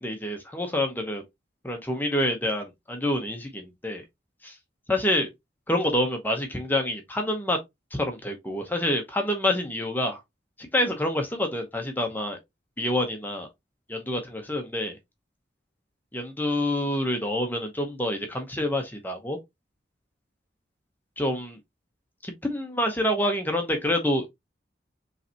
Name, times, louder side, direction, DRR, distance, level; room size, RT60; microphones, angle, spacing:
voice 1, 0.0-1.2 1.6-4.0 4.4-4.6 4.9-5.3 5.7-7.6 7.9-10.2 10.7-12.4 12.8-13.5 13.9-15.0 16.1-19.4 21.2-21.6 22.2-24.3, left 1 dB, 10° left, 0.8 m, -27 dB
5.4 x 3.2 x 2.8 m
head